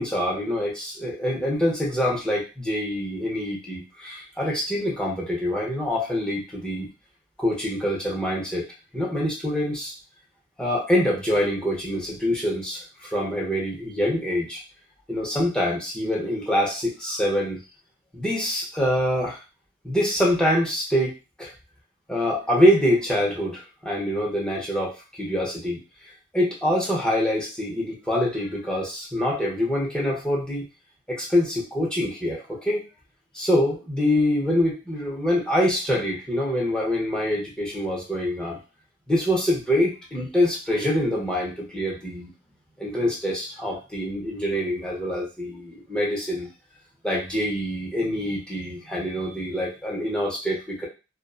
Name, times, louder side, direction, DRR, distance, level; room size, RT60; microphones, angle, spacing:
voice 1, 0.0-6.9 7.4-8.7 8.9-9.9 10.6-14.6 15.1-17.6 18.1-19.4 19.8-21.1 21.4-21.5 22.1-25.8 26.3-30.6 31.1-32.8 33.3-38.6 39.1-42.3 42.8-46.5 47.0-50.9, equal, 5° left, -5 dB, 0.7 m, -25 dB
2.5 x 2.2 x 2.3 m, 0.30 s
head